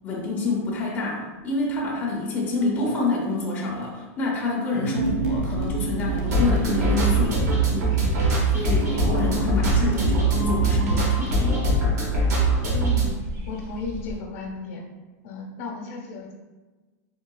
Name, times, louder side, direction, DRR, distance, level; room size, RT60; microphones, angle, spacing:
voice 1, 0.0-7.4 7.7-8.0 8.5-11.7, left 3 dB, 20° left, -4 dB, 0.5 m, -27 dB
sound 1, 4.7-10.8, right 5 dB, 50° right, 0.4 m, -29 dB
sound 2, 5.3-14.2, left 2 dB, 65° right, 1.5 m, -36 dB
sound 3, 6.3-13.0, right 2 dB, 85° right, 0.9 m, -22 dB
voice 2, 12.7-13.1 13.5-14.8 15.2-16.3, left 3 dB, 60° left, 0 dB, 0.6 m, -34 dB
3.6 x 2.3 x 2.2 m, 1.3 s
supercardioid pair, 155°, 9 cm